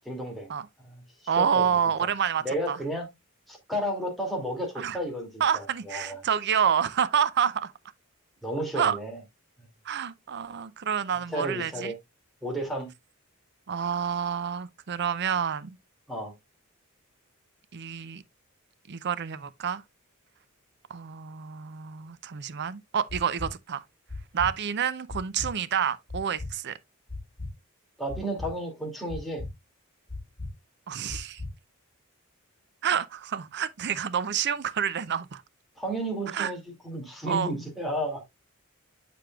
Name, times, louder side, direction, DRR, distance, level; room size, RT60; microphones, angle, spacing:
voice 1, 0.0-0.5 0.8-1.8 2.4-3.1 3.5-6.2 8.4-9.2 11.3-12.0 12.4-12.9 16.1-16.3 28.0-29.4 35.8-38.2, equal, ahead, 2.5 m, -32 dB
voice 2, 1.3-2.8 4.8-5.0 5.4-7.7 8.8-9.0 9.9-11.9 13.7-15.8 17.7-18.2 18.9-19.8 20.9-23.8 24.3-26.8 30.9-31.4 32.8-35.4 36.3-36.5 37.3-37.5, right 8 dB, 50° right, 0.5 m, -28 dB
sound 1, 23.1-23.5 24.1-24.5 25.1-25.5 26.1-26.5 27.1-27.5 28.1-28.5 29.1-29.5 30.1-30.5 31.1-31.5, left 2 dB, 45° left, 4.0 m, -36 dB
7.5 x 6.7 x 2.3 m
head